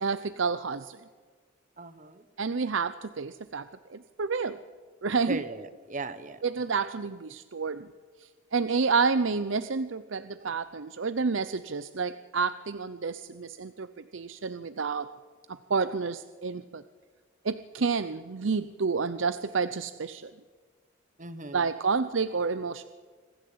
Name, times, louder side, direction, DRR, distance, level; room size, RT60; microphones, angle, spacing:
voice 1, 0.0-1.0 2.4-4.6 5.0-5.4 6.4-7.9 8.5-15.1 15.7-16.8 17.4-20.3 21.5-22.8, right 5 dB, 70° right, 13 dB, 0.7 m, -29 dB
voice 2, 1.8-2.2 5.3-6.4 10.4-10.5 21.2-21.6, right 3 dB, 40° right, 12 dB, 1.2 m, -38 dB
26.0 x 15.5 x 8.7 m, 1.5 s
head